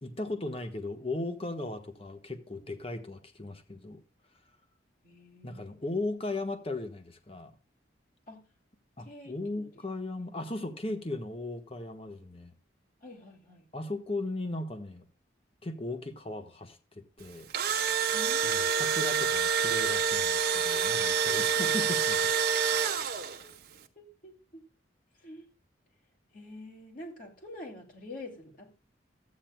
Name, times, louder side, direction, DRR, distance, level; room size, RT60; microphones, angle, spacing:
voice 1, 0.0-4.0 5.4-7.5 9.0-12.5 13.7-15.1 15.6-17.5 18.4-22.2, left 2 dB, 30° left, 1.2 m, -37 dB
voice 2, 5.0-5.7 8.3-8.4 9.0-9.7 13.0-13.6 18.1-18.9 22.7-23.5 24.0-24.6 25.2-25.5 26.3-28.8, left 1 dB, 45° left, 2.6 m, -47 dB
Engine / Drill, 17.3-23.5, right 6 dB, 55° right, 1.1 m, -27 dB
14.0 x 9.1 x 2.3 m
head